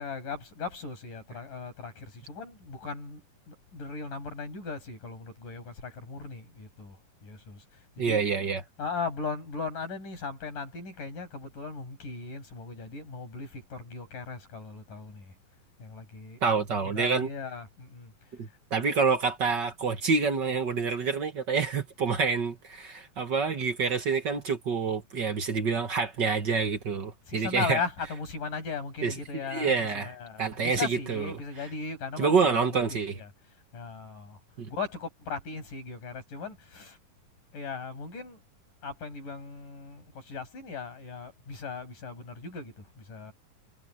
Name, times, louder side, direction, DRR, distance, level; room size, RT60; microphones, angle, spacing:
voice 1, 0.0-3.2 3.5-7.0 7.2-8.2 8.8-15.3 15.8-16.4 16.9-18.3 27.3-32.6 32.9-33.3 33.7-34.4 34.7-37.0 37.5-38.4 38.8-43.3, left 5 dB, 65° left, 8.5 m, -38 dB
voice 2, 8.0-8.6 16.4-17.3 18.4-27.8 29.0-31.3 32.2-33.2 34.6-34.7, right 5 dB, 45° right, 1.5 m, -27 dB
omnidirectional pair, 4.0 m